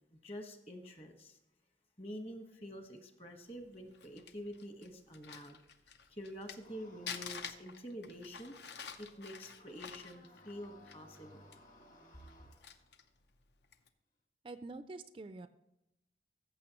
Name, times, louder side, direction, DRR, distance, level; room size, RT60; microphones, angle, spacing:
voice 1, 0.2-1.4 2.0-5.6 6.1-8.5 9.0-11.4, equal, 35° left, 5 dB, 1.2 m, -47 dB
Crumpling crinkling, 3.7-6.7 7.1-11.2 11.5-11.6 12.2-13.1 13.6-13.9, left 7 dB, 75° left, 0.7 m, -48 dB
sound 1, 6.6-13.0, left 1 dB, 50° left, 2.1 m, -62 dB
voice 2, 14.4-15.5, right 3 dB, 30° right, 11 dB, 0.3 m, -46 dB
14.5 x 6.5 x 3.0 m, 0.89 s
head